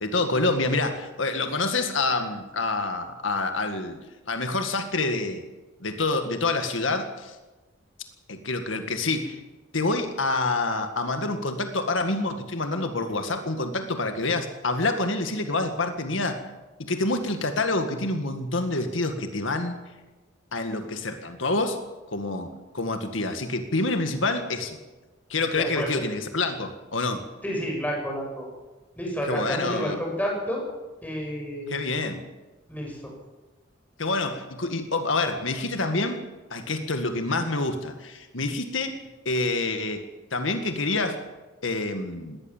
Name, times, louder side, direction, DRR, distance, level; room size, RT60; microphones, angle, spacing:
voice 1, 0.0-4.0 4.3-5.4 5.8-7.4 8.3-9.4 9.7-16.4 16.8-19.8 20.5-21.8 22.1-24.8 25.3-27.2 29.3-30.0 31.7-32.2 34.0-36.2 36.5-38.9 39.3-40.0 40.3-41.2 41.6-42.4, left 2 dB, 85° left, 7 dB, 1.9 m, -27 dB
voice 2, 25.6-25.9 27.4-28.5 29.0-30.6 31.0-31.8 32.7-33.1, equal, 10° left, -1 dB, 6.8 m, -30 dB
20.5 x 18.0 x 7.4 m, 1.1 s
head